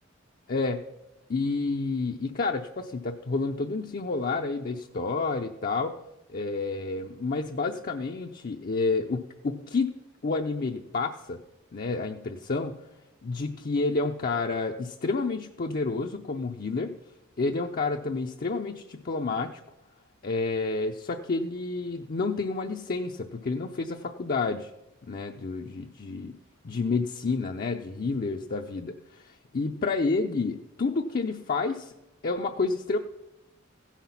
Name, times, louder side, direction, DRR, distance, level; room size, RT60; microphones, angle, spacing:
voice 1, 0.5-0.8 1.3-5.9 6.3-10.0 10.2-11.4 11.7-12.8 13.2-16.9 17.4-19.6 20.2-24.7 25.1-26.3 26.6-31.9 32.2-33.0, left 3 dB, 45° left, 3 dB, 0.5 m, -29 dB
15.5 x 5.8 x 5.8 m, 0.94 s
head